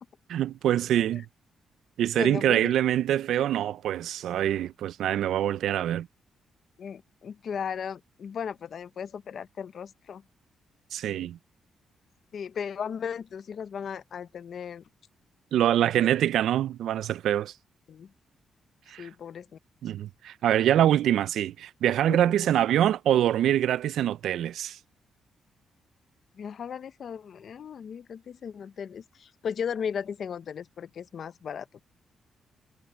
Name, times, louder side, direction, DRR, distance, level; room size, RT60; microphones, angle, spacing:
voice 1, 0.3-1.3 2.0-6.1 10.9-11.4 15.5-17.5 18.9-19.1 19.8-24.8, right 11 dB, 85° right, 0.4 m, -25 dB
voice 2, 2.1-2.7 6.8-10.2 12.3-14.8 17.9-18.1 19.0-19.5 22.1-22.5 26.4-31.8, left 7 dB, 55° left, 0.7 m, -36 dB
cardioid pair, 130°, 0 cm